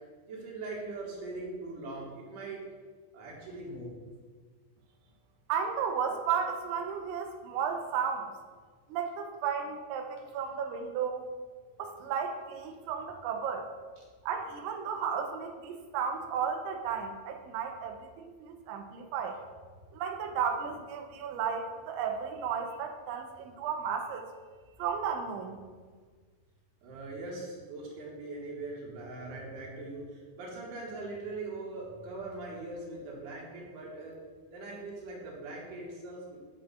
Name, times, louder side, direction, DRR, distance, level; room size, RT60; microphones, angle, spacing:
voice 1, 0.3-2.6 3.1-3.9 26.8-34.2 34.5-36.4, right 2 dB, 60° right, -3 dB, 2.6 m, -41 dB
voice 2, 5.5-8.3 8.9-11.3 11.8-13.7 14.2-19.4 19.9-24.3 24.8-25.6, right 7 dB, 90° right, 5 dB, 3.2 m, -34 dB
12.5 x 6.2 x 2.4 m, 1.5 s
omnidirectional pair, 5.2 m